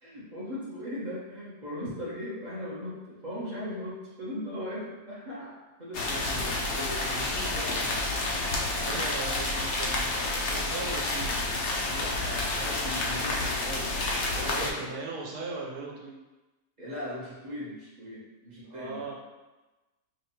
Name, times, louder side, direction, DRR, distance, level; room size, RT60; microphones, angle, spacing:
voice 1, 0.0-8.2 8.8-9.1 11.9-14.9 16.8-19.1, left 1 dB, 45° right, -7 dB, 0.6 m, -39 dB
sound 1, 5.9-14.7, left 2 dB, 85° left, 0.5 m, -29 dB
voice 2, 8.8-11.4 14.5-16.2 18.6-19.1, right 4 dB, 75° right, -1 dB, 1.2 m, -38 dB
4.9 x 2.2 x 2.9 m, 1.1 s
omnidirectional pair, 1.7 m